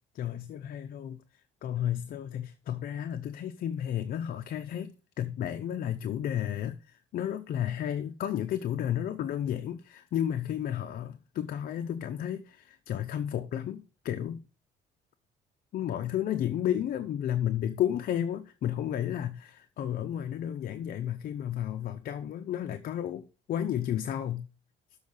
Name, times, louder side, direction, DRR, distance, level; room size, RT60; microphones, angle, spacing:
voice 1, 0.1-1.2 1.6-14.4 15.7-19.4 19.8-24.5, left 10 dB, 60° left, 0.7 m, -32 dB
7.2 x 4.8 x 6.4 m
cardioid pair, 110°, 17 cm